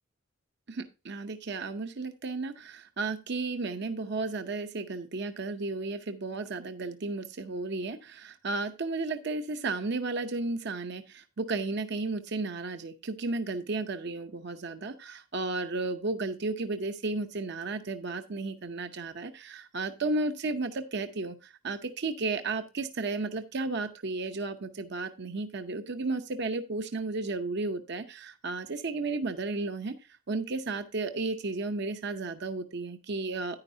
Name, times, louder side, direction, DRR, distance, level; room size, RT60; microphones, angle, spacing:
voice 1, 0.7-29.9 30.3-33.6, right 3 dB, 60° right, 7 dB, 0.7 m, -33 dB
9.9 x 9.7 x 2.7 m, 0.28 s
head